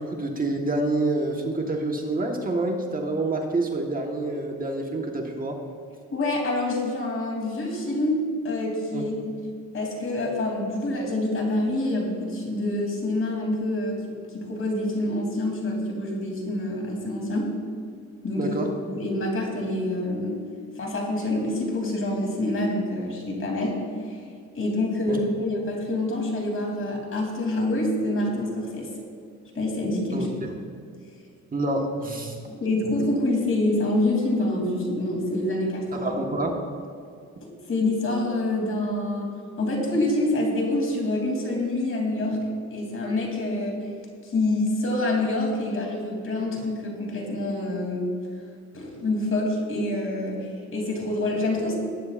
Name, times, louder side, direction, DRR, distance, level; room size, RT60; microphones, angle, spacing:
voice 1, 0.0-5.6 8.9-9.0 18.4-18.7 25.1-25.2 30.1-30.5 31.5-32.4 35.9-36.6, right 2 dB, 30° right, 1 dB, 1.4 m, -27 dB
voice 2, 6.1-8.2 8.4-9.4 9.7-17.5 18.2-18.6 18.9-20.4 20.8-24.2 24.5-28.9 29.5-30.3 32.5-36.1 37.7-39.3 39.6-42.4 42.7-43.9 44.2-48.1 48.7-51.8, left 1 dB, 45° left, 0 dB, 3.1 m, -26 dB
19.5 x 9.6 x 2.5 m, 2.3 s
cardioid pair, 90°, 30 cm